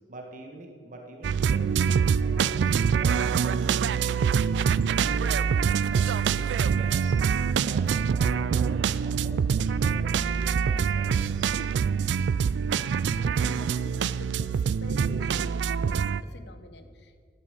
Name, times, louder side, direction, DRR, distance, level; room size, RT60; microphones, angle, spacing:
voice 1, 0.1-3.9 4.2-4.8 5.1-5.4 5.8-11.6, right 1 dB, 50° right, 2 dB, 1.5 m, -45 dB
sound 1, 1.2-16.2, right 6 dB, 90° right, 0.3 m, -25 dB
voice 2, 12.7-17.2, left 2 dB, 70° left, 8 dB, 1.0 m, -47 dB
12.0 x 9.3 x 6.7 m, 2.1 s
head